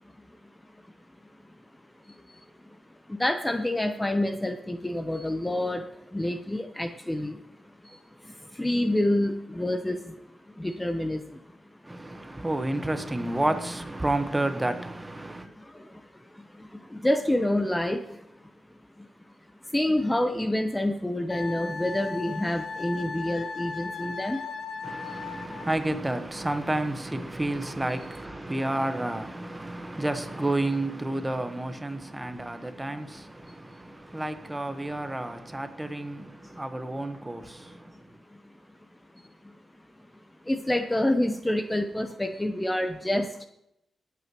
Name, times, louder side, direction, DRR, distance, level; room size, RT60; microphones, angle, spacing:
voice 1, 2.1-2.8 3.1-7.4 7.8-10.2 10.5-11.4 15.4-18.2 19.0-19.1 19.6-24.6 25.1-25.2 33.4-33.6 34.1-34.2 36.4-36.5 38.3-38.4 39.4-39.5 40.4-43.5, left 1 dB, 10° left, 0.8 m, -28 dB
voice 2, 11.8-15.5 24.8-38.0, right 1 dB, 15° right, 1.1 m, -30 dB
Wind instrument woodwind instrument, 21.3-25.8, left 4 dB, 75° left, 1.2 m, -37 dB
21.5 x 8.4 x 3.0 m
cardioid pair, 85°, 0 cm